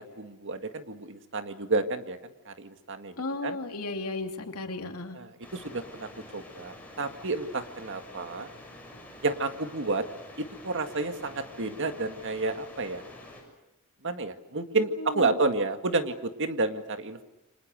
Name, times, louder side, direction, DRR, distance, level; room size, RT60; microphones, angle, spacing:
voice 1, 0.0-2.2 2.5-3.1 3.4-3.6 5.1-8.5 9.2-10.0 10.4-13.0 14.0-17.2, right 3 dB, 60° right, 8 dB, 2.0 m, -30 dB
voice 2, 3.2-5.2 15.0-15.4, left 2 dB, 85° left, 4 dB, 3.0 m, -35 dB
sound 1, 5.4-13.4, left 1 dB, 5° left, 6.8 m, -47 dB
29.0 x 25.5 x 6.5 m, 0.91 s
head